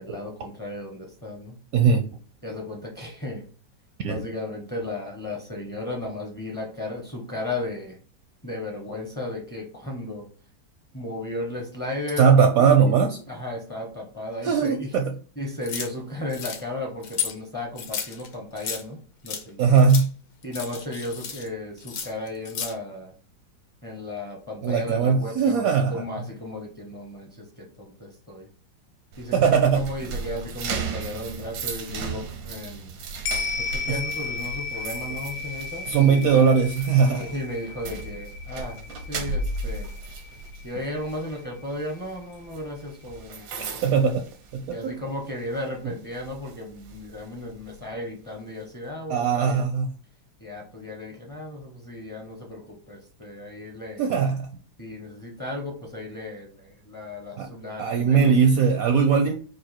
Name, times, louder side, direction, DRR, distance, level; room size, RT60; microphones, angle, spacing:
voice 1, 0.0-1.6 2.4-3.4 4.0-8.0 8.4-10.2 10.9-12.3 12.6-12.7 13.3-14.9 15.4-19.7 20.4-23.1 23.8-28.5 29.2-32.9 33.6-36.4 37.0-39.9 40.6-43.7 44.7-49.6 50.4-54.1 54.8-58.7, left 1 dB, 20° left, -1 dB, 0.5 m, -35 dB
voice 2, 1.7-2.0 4.0-4.2 12.2-13.2 14.4-15.1 19.6-20.1 24.6-26.0 29.3-29.9 33.9-34.0 35.9-37.3 43.8-44.2 44.5-44.9 49.1-49.9 54.0-54.5 57.4-57.5 57.8-59.3, right 6 dB, 70° right, 4 dB, 0.8 m, -20 dB
sound 1, 15.6-15.9 16.3-16.6 17.0-17.3 17.8-18.8 19.3-19.4 19.8-20.1 20.4-21.5 21.8-22.7, left 7 dB, 60° left, 1.2 m, -33 dB
sound 2, 29.1-45.1 45.4-45.7 46.1-47.8, right 3 dB, 90° right, 1.5 m, -36 dB
sound 3, 33.3-41.8 42.2-42.3, left 4 dB, 85° left, 1.4 m, -35 dB
4.9 x 2.4 x 4.3 m, 0.41 s
omnidirectional pair, 2.0 m